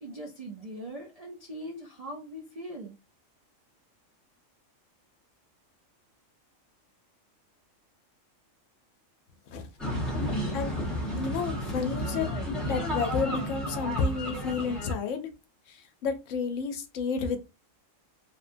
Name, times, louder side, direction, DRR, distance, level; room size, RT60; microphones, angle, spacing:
voice 1, 0.0-3.0, right 1 dB, 75° right, 1 dB, 0.3 m, -41 dB
sound 1, 9.8-14.9, equal, ahead, 0.7 m, -32 dB
voice 2, 11.2-12.3 12.6-15.3 15.7-17.4, left 5 dB, 75° left, 7 dB, 0.9 m, -31 dB
3.0 x 2.1 x 2.5 m, 0.27 s
omnidirectional pair, 1.4 m